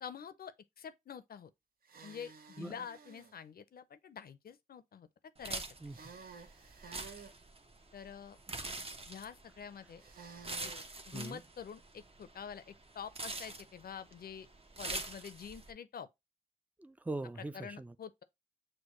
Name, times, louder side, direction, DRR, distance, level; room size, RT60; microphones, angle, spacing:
voice 1, 0.0-1.5 2.0-5.1 5.4-5.6 7.9-8.4 9.1-10.0 10.6-10.7 11.1-14.5 14.8-16.1 17.5-18.2, left 7 dB, 65° left, 0.5 m, -47 dB
sound 1, 1.8-3.3 5.9-7.4 10.0-10.9, right 5 dB, 65° right, 0.7 m, -53 dB
sound 2, 5.4-15.7, right 2 dB, 35° right, 0.9 m, -45 dB
voice 2, 5.8-6.1 8.5-8.7 11.1-11.4 16.8-17.9, right 2 dB, 10° right, 0.4 m, -42 dB
6.5 x 2.2 x 3.0 m
supercardioid pair, 40°, 16 cm